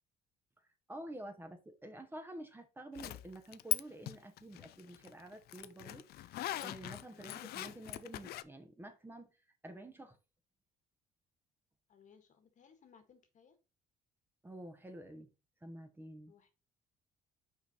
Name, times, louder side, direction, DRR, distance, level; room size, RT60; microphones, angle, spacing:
voice 1, 0.9-9.3 9.6-10.2 14.4-15.3 15.6-16.3, right 1 dB, 10° right, 1.0 m, -49 dB
Zipper (clothing), 3.0-3.8 4.1-8.4, left 15 dB, 70° left, 0.5 m, -40 dB
voice 2, 11.9-13.6 16.3-16.5, left 6 dB, 50° left, 1.5 m, -63 dB
5.8 x 4.6 x 4.0 m
cardioid pair, 110°, 17 cm